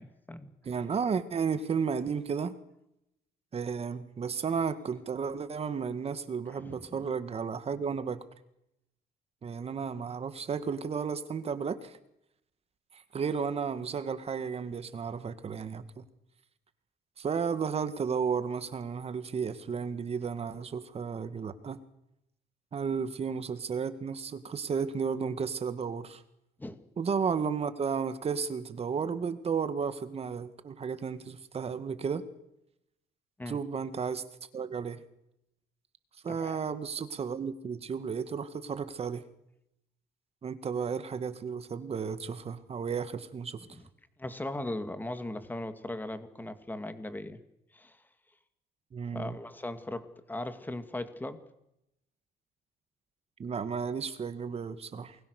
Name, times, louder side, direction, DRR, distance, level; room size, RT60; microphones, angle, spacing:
voice 1, 0.0-0.5 6.5-7.0 26.6-26.8 33.4-33.6 36.3-36.7 43.7-43.9 44.2-47.4 47.7-48.0 49.1-51.4, left 1 dB, 10° left, 10 dB, 2.4 m, -39 dB
voice 2, 0.6-2.5 3.5-8.2 9.4-12.0 12.9-16.0 17.2-21.8 22.7-26.2 27.0-32.2 33.5-34.2 34.5-35.0 36.2-39.2 40.4-43.6 48.9-49.4 53.4-55.2, right 6 dB, 35° right, 11 dB, 2.0 m, -33 dB
28.5 x 21.5 x 6.7 m, 0.83 s
cardioid pair, 110°, 17 cm